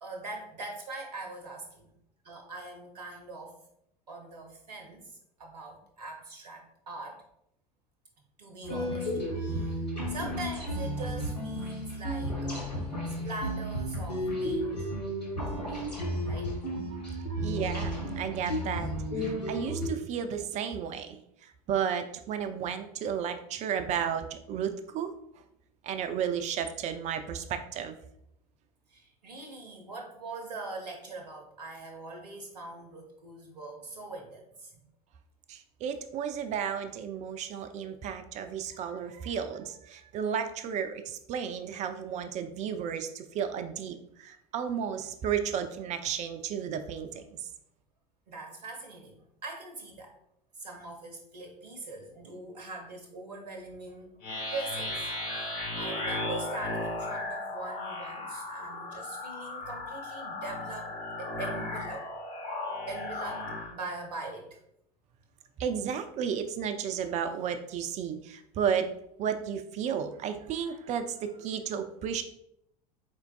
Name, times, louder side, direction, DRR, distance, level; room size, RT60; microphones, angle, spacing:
voice 1, 0.0-1.9 2.2-3.6 4.1-5.1 5.4-7.2 8.4-12.8 13.2-14.9 15.5-15.9 16.2-16.5 28.9-34.8 48.3-50.1 50.6-54.2 54.5-55.0 55.4-55.5 55.8-60.9 61.2-62.1 62.9-64.6, right 3 dB, 75° right, 3 dB, 0.7 m, -42 dB
sound 1, 8.6-19.9, equal, 90° left, 1.0 m, -33 dB
voice 2, 16.9-25.1 25.8-28.0 35.5-47.5 65.6-68.9 69.2-72.2, right 8 dB, 35° right, 8 dB, 0.4 m, -33 dB
sound 2, 54.2-63.7, left 2 dB, 45° left, 1.5 m, -36 dB
4.4 x 3.4 x 2.3 m, 0.76 s
figure-of-eight pair, 75°, 21 cm